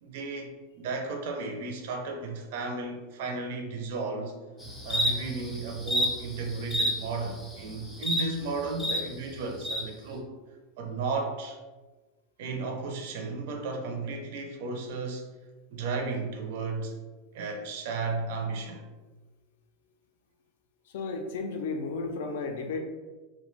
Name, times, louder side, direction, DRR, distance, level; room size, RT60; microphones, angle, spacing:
voice 1, 0.0-4.3 4.8-10.3 10.8-11.6 12.4-15.3 15.7-17.0 17.3-18.9, right 3 dB, 60° right, 3 dB, 0.4 m, -34 dB
sound 1, 4.6-9.0 9.6-9.8, equal, 10° left, 0.4 m, -30 dB
voice 2, 20.9-22.8, left 4 dB, 75° left, 4 dB, 0.4 m, -33 dB
2.5 x 2.1 x 3.1 m, 1.2 s
supercardioid pair, 160°, 0 cm